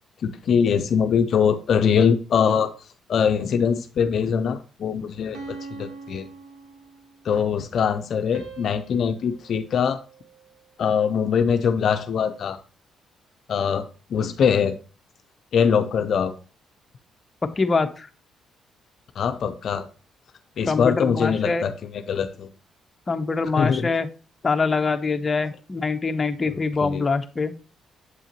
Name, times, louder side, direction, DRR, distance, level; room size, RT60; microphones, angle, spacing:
voice 1, 0.2-2.7 3.1-6.3 7.2-10.0 10.8-12.6 13.5-13.9 14.1-14.8 15.5-16.3 19.2-19.9 20.6-22.5 23.6-23.9 26.5-27.0, left 7 dB, 60° left, 7 dB, 0.5 m, -22 dB
sound 1, 5.3-7.3 8.3-10.7, right 4 dB, 80° right, 1.4 m, -43 dB
voice 2, 17.4-18.1 20.7-21.6 23.1-24.1 24.4-27.5, left 4 dB, 30° left, 7 dB, 0.7 m, -24 dB
7.6 x 5.5 x 2.9 m, 0.36 s
cardioid pair, 90°, 0 cm